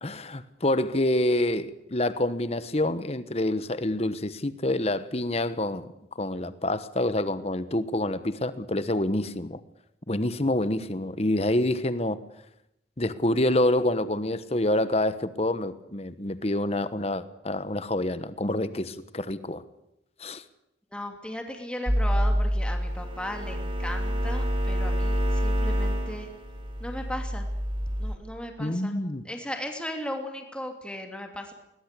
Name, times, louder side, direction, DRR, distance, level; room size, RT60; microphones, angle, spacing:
voice 1, 0.0-5.9 6.2-9.6 10.1-12.2 13.0-19.6 20.2-20.4 28.6-29.2, left 1 dB, 35° left, 1.2 m, -27 dB
voice 2, 20.9-26.3 26.8-27.5 28.0-29.0 29.2-31.5, left 1 dB, 5° left, 2.7 m, -36 dB
sound 1, 21.9-28.2, equal, 30° right, 3.1 m, -27 dB
21.0 x 20.0 x 8.3 m
head